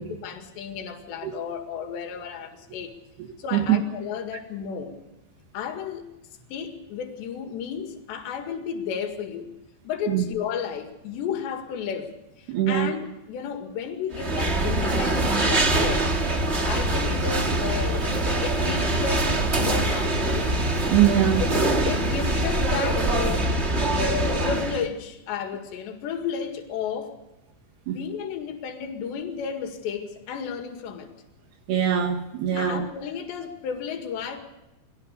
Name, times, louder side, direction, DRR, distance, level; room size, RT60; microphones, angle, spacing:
voice 1, 0.0-2.9 3.4-5.0 5.5-6.1 6.5-9.5 9.8-20.5 21.4-23.5 24.0-27.1 27.9-31.1 32.6-34.4, left 7 dB, 80° left, 5 dB, 4.2 m, -33 dB
voice 2, 12.5-12.9 20.9-21.5 27.9-28.1 31.7-32.9, right 11 dB, 70° right, 3 dB, 3.5 m, -22 dB
sound 1, 14.1-24.8, right 1 dB, 35° right, 1.1 m, -24 dB
23.5 x 18.0 x 6.8 m, 0.92 s
omnidirectional pair, 5.0 m